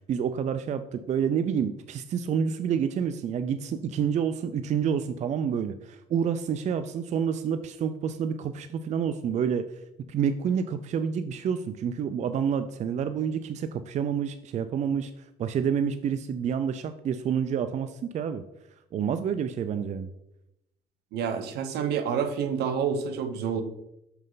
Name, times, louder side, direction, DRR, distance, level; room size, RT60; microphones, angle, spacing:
voice 1, 0.1-9.7 10.1-18.4 18.9-20.1, right 7 dB, 45° right, 10 dB, 0.4 m, -28 dB
voice 2, 21.1-23.6, right 7 dB, 75° right, 9 dB, 0.9 m, -28 dB
6.4 x 5.6 x 3.9 m, 0.85 s
cardioid pair, 110°, 17 cm